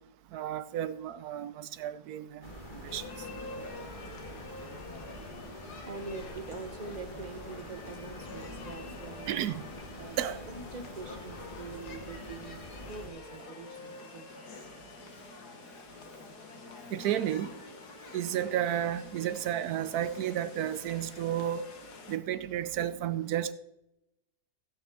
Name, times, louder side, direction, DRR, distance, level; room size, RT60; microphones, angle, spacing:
voice 1, 0.3-2.5 2.8-3.1 9.3-9.6 10.2-10.4 16.9-17.5 18.1-21.7 22.1-23.5, right 11 dB, 70° right, 14 dB, 1.1 m, -32 dB
sound 1, 2.4-13.1, left 1 dB, 30° left, 2.3 m, -46 dB
sound 2, 2.9-22.2, left 3 dB, 75° left, 2.0 m, -47 dB
voice 2, 5.8-9.4 10.0-10.2 10.5-12.6 12.9-14.4, right 4 dB, 40° right, 10 dB, 0.6 m, -44 dB
16.5 x 8.8 x 3.6 m, 0.89 s
omnidirectional pair, 1.7 m